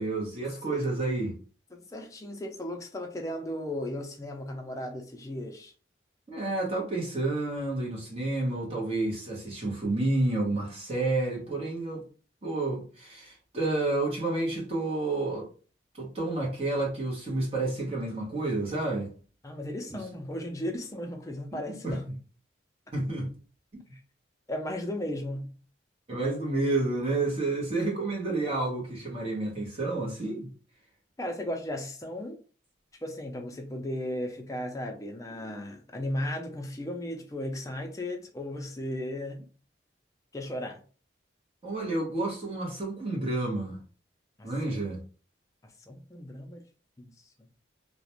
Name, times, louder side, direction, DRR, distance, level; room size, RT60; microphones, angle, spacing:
voice 1, 0.0-1.3 6.3-12.0 12.4-15.5 15.9-19.1 21.7-22.0 22.9-23.3 26.1-30.5 41.6-43.8 44.4-45.0, right 2 dB, 30° right, 0.9 m, -30 dB
voice 2, 1.7-5.7 19.4-22.0 24.5-25.5 31.2-32.4 33.0-39.4 40.3-40.8 44.4-44.8 45.9-46.6 47.0-47.1, left 1 dB, 15° left, 0.4 m, -36 dB
2.4 x 2.1 x 2.9 m
head